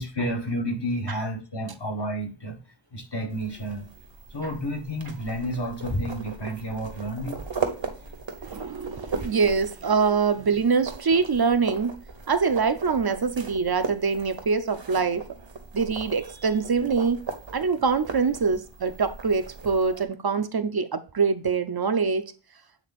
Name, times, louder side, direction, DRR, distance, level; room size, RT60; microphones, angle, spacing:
voice 1, 0.0-2.6 2.9-3.9 4.3-7.4, equal, 65° left, 1.5 m, -30 dB
sound 1, 3.3-20.0, right 4 dB, 75° right, 1.2 m, -38 dB
voice 2, 8.4-11.9 12.3-15.2 15.7-17.2 17.5-22.3, right 5 dB, 55° right, 0.7 m, -24 dB
8.1 x 3.5 x 4.1 m
wide cardioid pair, 55°, 45 cm